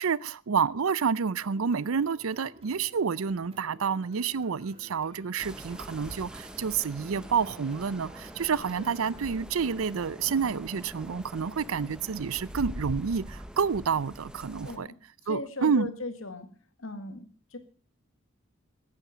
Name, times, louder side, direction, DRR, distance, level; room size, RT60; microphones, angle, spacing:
voice 1, 0.0-14.9 15.3-15.9, right 6 dB, 85° right, 0.5 m, -29 dB
sound 1, 1.4-9.4, right 1 dB, 30° right, 2.7 m, -54 dB
sound 2, 5.4-14.8, equal, 5° right, 0.9 m, -43 dB
voice 2, 14.6-15.0 15.2-16.5 16.8-17.6, left 2 dB, 75° left, 1.9 m, -38 dB
15.5 x 9.8 x 5.1 m
head